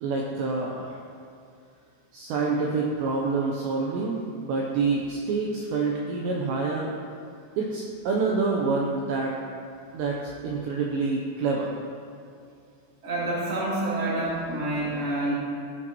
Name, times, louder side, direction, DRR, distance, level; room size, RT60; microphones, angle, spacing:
voice 1, 0.0-1.0 2.1-6.9 7.6-9.4 9.9-10.2 10.4-11.7, right 4 dB, 75° right, -2 dB, 2.6 m, -27 dB
voice 2, 13.0-15.3, right 1 dB, 30° right, -8 dB, 1.8 m, -28 dB
14.5 x 8.3 x 3.0 m, 2.4 s
omnidirectional pair, 5.7 m